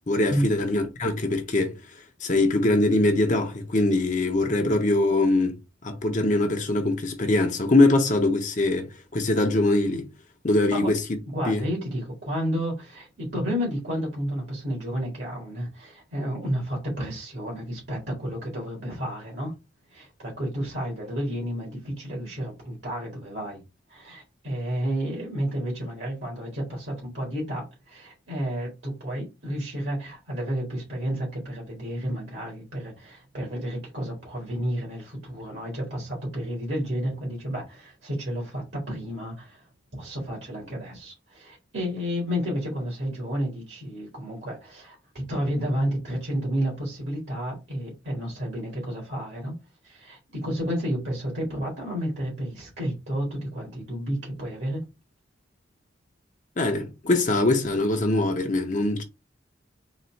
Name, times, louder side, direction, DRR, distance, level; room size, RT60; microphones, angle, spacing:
voice 1, 0.1-1.8 2.2-5.6 5.8-10.1 10.4-11.0 11.5-11.6 56.6-59.0, left 2 dB, 40° left, 0.6 m, -22 dB
voice 2, 11.3-19.5 19.9-23.6 23.9-39.6 40.0-49.5 49.8-54.8, equal, 65° right, 1.9 m, -31 dB
4.0 x 2.4 x 4.3 m
head